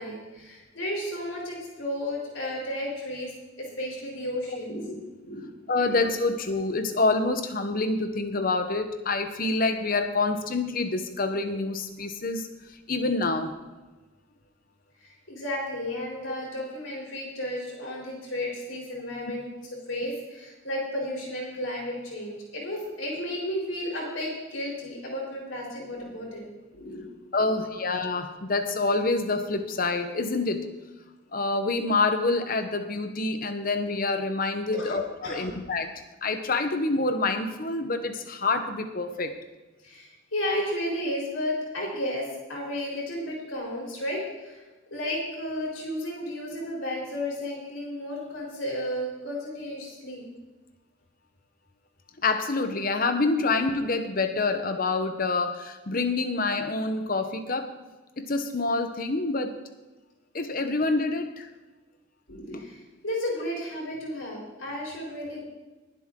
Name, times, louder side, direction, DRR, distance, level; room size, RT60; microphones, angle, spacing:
voice 1, 0.0-3.3 3.6-5.5 5.8-6.0 15.0-19.5 19.9-27.1 27.7-27.8 34.7-34.9 35.2-35.5 39.8-44.6 44.9-50.3 53.4-53.5 62.3-65.4, left 1 dB, 90° left, -4 dB, 4.1 m, -33 dB
voice 2, 5.7-12.5 12.9-13.5 27.3-30.7 31.3-39.4 52.2-57.8 58.2-59.6 60.3-61.5, left 3 dB, 45° left, 8 dB, 1.0 m, -27 dB
20.5 x 7.8 x 3.8 m, 1.2 s
head